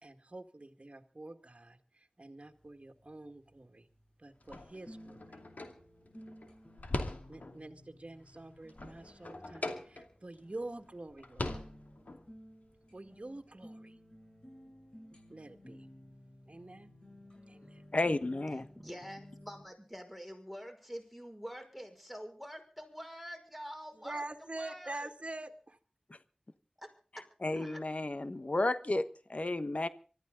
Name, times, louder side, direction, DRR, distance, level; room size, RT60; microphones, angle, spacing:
voice 1, 0.0-3.9 4.2-5.4 7.3-11.7 12.9-14.0 15.3-15.9 16.5-16.9 17.5-17.8 23.9-25.8, right 2 dB, 50° right, 6 dB, 2.0 m, -46 dB
sound 1, 2.4-19.7, equal, 35° left, 7.5 m, -56 dB
sound 2, 4.4-7.7 8.1-10.4 10.7-10.8 11.1-12.3, left 2 dB, 90° left, 2.5 m, -41 dB
voice 2, 17.9-18.7 27.4-29.9, left 2 dB, 55° left, 11 dB, 1.3 m, -32 dB
voice 3, 18.8-24.2 24.6-25.1 26.8-26.9 27.6-27.8, equal, ahead, 4 dB, 5.5 m, -46 dB
24.5 x 14.0 x 3.9 m, 0.37 s
wide cardioid pair, 45°, 3 cm